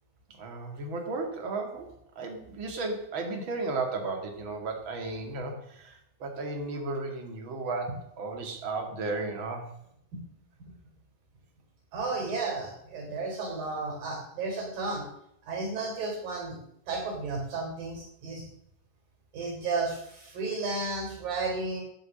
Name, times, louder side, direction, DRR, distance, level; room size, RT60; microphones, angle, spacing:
voice 1, 0.4-1.9 2.2-9.6, right 3 dB, 40° right, 3 dB, 2.6 m, -34 dB
voice 2, 11.9-15.0 15.4-16.6 16.9-18.4 19.3-21.8, right 3 dB, 80° right, -1 dB, 5.6 m, -33 dB
12.5 x 9.4 x 6.5 m, 0.76 s
omnidirectional pair, 3.9 m